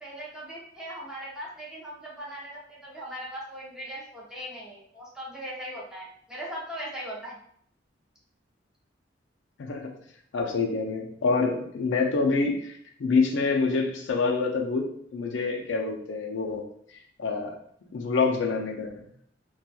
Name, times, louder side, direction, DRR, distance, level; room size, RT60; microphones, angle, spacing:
voice 1, 0.0-7.4, equal, 5° right, -6 dB, 0.6 m, -39 dB
voice 2, 10.3-14.8 15.1-16.6 17.2-17.5 17.9-18.9, left 4 dB, 75° left, 1 dB, 0.4 m, -26 dB
2.8 x 2.3 x 2.3 m, 0.66 s
head